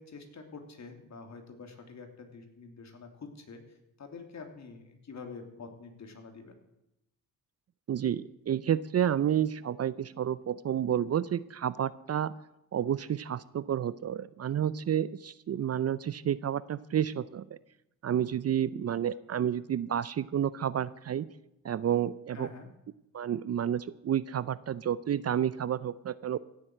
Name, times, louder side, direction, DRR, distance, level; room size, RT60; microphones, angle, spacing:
voice 1, 0.0-6.6 22.3-22.7, left 4 dB, 50° left, 4 dB, 2.9 m, -47 dB
voice 2, 7.9-12.3 12.7-17.6 18.0-21.3 21.6-22.5 23.1-26.4, right 9 dB, 45° right, 17 dB, 0.5 m, -30 dB
16.0 x 7.8 x 7.8 m, 0.86 s
cardioid pair, 70°, 36 cm